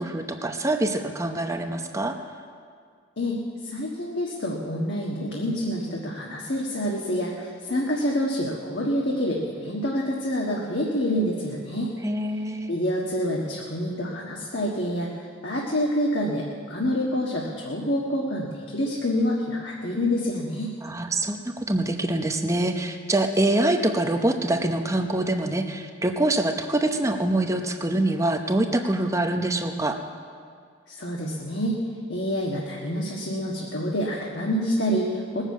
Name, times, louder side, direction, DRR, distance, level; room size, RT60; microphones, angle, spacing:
voice 1, 0.0-2.2 12.0-12.7 20.8-30.0, right 1 dB, 15° right, 5 dB, 0.8 m, -25 dB
voice 2, 3.2-11.9 12.7-15.1 15.4-20.7 30.9-31.8 32.1-35.4, equal, 60° left, -2 dB, 1.5 m, -27 dB
19.5 x 7.3 x 8.3 m, 2.1 s
head